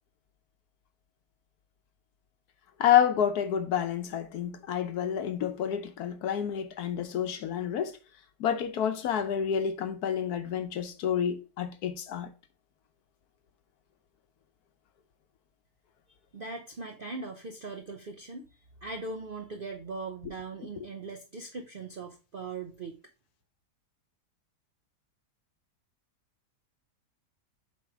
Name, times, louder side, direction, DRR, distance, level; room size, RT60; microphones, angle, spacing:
voice 1, 2.8-8.0 8.4-12.3, left 9 dB, 70° left, 1.2 m, -29 dB
voice 2, 16.3-18.5 18.8-23.0, right 3 dB, 55° right, 0.6 m, -40 dB
7.4 x 3.1 x 4.7 m
omnidirectional pair, 1.8 m